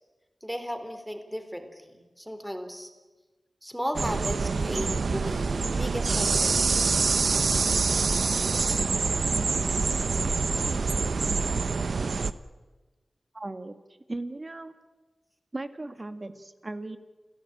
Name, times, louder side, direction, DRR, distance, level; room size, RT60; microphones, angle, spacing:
voice 1, 0.4-2.9 3.6-6.9, equal, ahead, 7 dB, 3.6 m, -35 dB
sound 1, 3.9-12.3, right 4 dB, 80° right, 0.8 m, -25 dB
voice 2, 13.3-13.8 14.1-14.8 15.5-17.0, right 2 dB, 40° right, 10 dB, 1.9 m, -37 dB
28.5 x 16.5 x 8.9 m, 1.2 s
cardioid pair, 55°, 0 cm